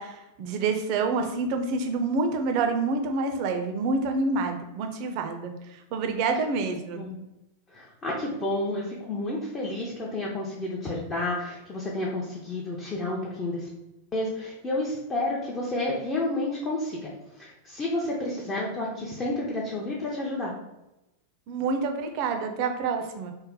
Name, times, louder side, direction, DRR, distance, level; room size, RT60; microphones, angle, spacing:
voice 1, 0.0-7.1 21.5-23.3, right 4 dB, 45° right, 5 dB, 0.5 m, -27 dB
voice 2, 7.7-13.7 14.1-20.5, left 2 dB, 20° left, -4 dB, 0.6 m, -30 dB
3.2 x 2.1 x 3.7 m, 0.94 s
figure-of-eight pair, 90°, 0 cm